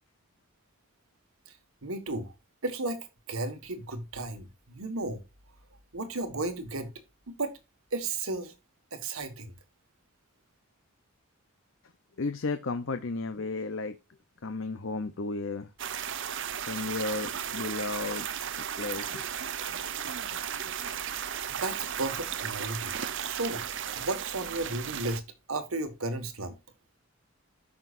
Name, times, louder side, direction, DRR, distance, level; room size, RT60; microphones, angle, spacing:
voice 1, 1.8-2.3 2.6-5.2 5.9-6.9 7.3-7.5 7.9-8.5 8.9-9.5 21.5-23.6 23.9-25.2 25.5-26.6, right 2 dB, 75° right, 1.6 m, -34 dB
voice 2, 12.2-14.0 14.4-15.7 16.7-18.3 18.6-19.3 19.7-20.7, left 3 dB, 60° left, 0.7 m, -34 dB
sound 1, 15.8-25.2, right 8 dB, 60° right, 0.7 m, -35 dB
13.5 x 5.9 x 2.6 m
head